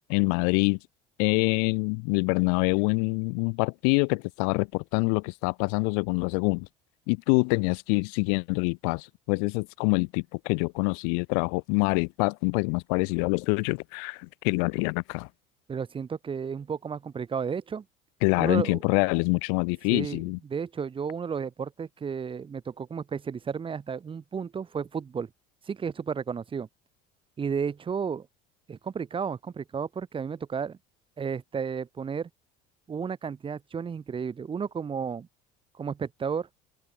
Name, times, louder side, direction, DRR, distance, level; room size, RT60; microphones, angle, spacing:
voice 1, 0.1-0.8 1.2-6.7 7.1-15.3 18.2-20.4, left 40 dB or more, 80° left, 0.4 m, -25 dB
voice 2, 15.7-17.8 18.4-18.8 19.9-25.3 25.7-26.7 27.4-28.3 28.7-30.8 31.2-32.3 32.9-35.3 35.8-36.5, right 6 dB, 30° right, 2.9 m, -33 dB
open air
supercardioid pair, 110°, 19 cm